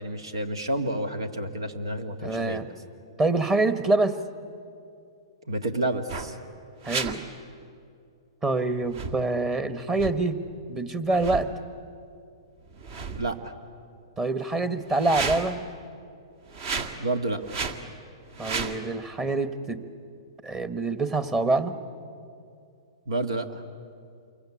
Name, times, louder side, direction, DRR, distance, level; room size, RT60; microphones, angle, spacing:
voice 1, 0.0-2.6 5.5-6.4 13.2-13.5 17.0-17.4 23.1-23.6, right 1 dB, 85° right, 9 dB, 2.1 m, -29 dB
voice 2, 2.2-2.7 3.2-4.2 6.8-7.3 8.4-10.4 10.7-11.5 14.2-15.6 18.4-19.8 20.4-21.8, right 2 dB, 20° right, 11 dB, 1.4 m, -25 dB
sound 1, 6.1-6.3 6.8-7.2 8.9-9.2 9.9-10.2 11.1-11.5 12.7-13.4 14.9-15.6 16.5-17.0 17.4-17.8 18.3-18.8, right 5 dB, 50° right, 1.9 m, -32 dB
28.0 x 23.5 x 8.6 m, 2.4 s
hypercardioid pair, 130°, 3 cm